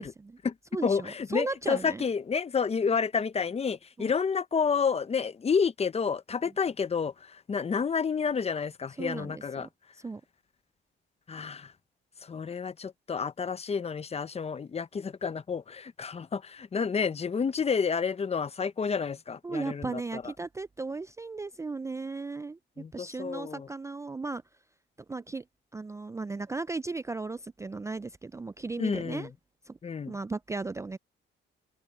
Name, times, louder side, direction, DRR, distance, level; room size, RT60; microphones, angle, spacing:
voice 1, 0.0-0.3 0.7-2.1 4.0-4.1 9.0-9.7 10.0-10.2 19.4-22.6 22.9-24.4 25.1-25.4 25.7-29.3 29.7-29.8 30.1-31.0, right 3 dB, 15° right, 0.4 m, -36 dB
voice 2, 0.8-9.7 11.3-11.7 12.2-20.2 22.8-23.7 28.8-29.3 29.8-30.1, left 6 dB, 30° left, 0.7 m, -30 dB
open air
cardioid pair, 90°, 20 cm